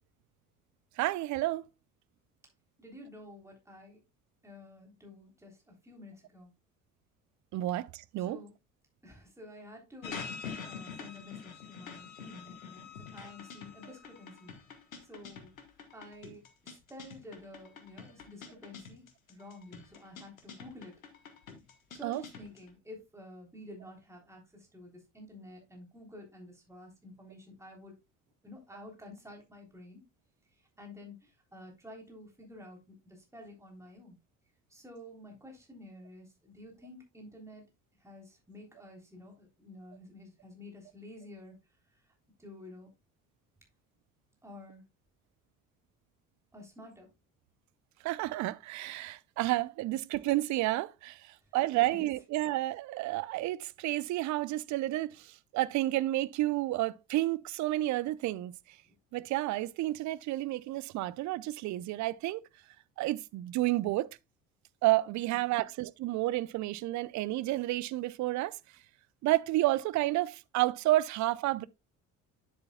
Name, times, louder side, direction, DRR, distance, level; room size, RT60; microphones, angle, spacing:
voice 1, 1.0-1.7 7.5-8.4 22.0-22.2 48.0-51.2 51.5-55.1 55.5-58.5 59.1-62.4 63.0-64.1 64.8-68.6 69.2-71.7, right 17 dB, 45° right, 0.6 m, -30 dB
voice 2, 2.8-4.0 4.4-6.5 8.2-8.5 9.0-10.3 10.6-14.5 15.0-15.5 15.9-19.0 19.3-20.9 21.9-27.9 28.4-30.0 30.8-32.8 33.0-34.1 34.7-37.6 38.0-41.6 42.4-42.9 44.4-44.8 46.5-47.1 51.9-52.0 65.3-65.6, left 1 dB, 5° right, 3.4 m, -50 dB
sound 1, 10.0-22.7, left 6 dB, 85° left, 1.4 m, -46 dB
9.7 x 7.9 x 2.3 m
hypercardioid pair, 55°, 40 cm